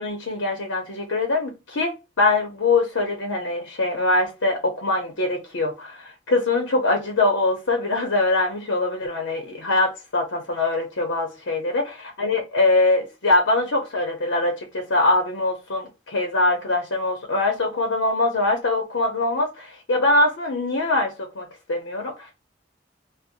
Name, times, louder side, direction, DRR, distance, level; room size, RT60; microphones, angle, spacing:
voice 1, 0.0-11.8 12.2-22.3, left 2 dB, 90° left, 0.8 m, -23 dB
2.6 x 2.2 x 4.0 m
head